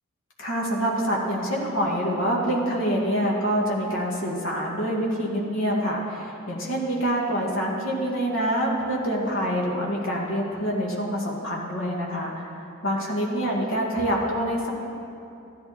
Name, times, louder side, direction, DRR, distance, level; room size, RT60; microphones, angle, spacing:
voice 1, 0.4-14.7, equal, 65° left, -3 dB, 1.9 m, -26 dB
14.0 x 11.0 x 4.3 m, 2.8 s
head